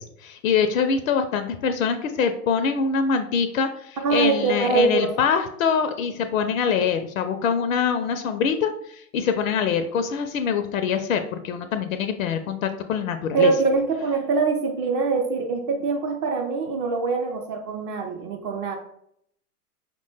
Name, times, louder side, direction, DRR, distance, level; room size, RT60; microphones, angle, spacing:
voice 1, 0.0-13.5, left 6 dB, 60° left, 8 dB, 0.5 m, -24 dB
voice 2, 4.0-5.1 13.3-18.8, right 4 dB, 30° right, 2 dB, 0.5 m, -23 dB
5.1 x 2.2 x 3.2 m, 0.71 s
hypercardioid pair, 105°, 47 cm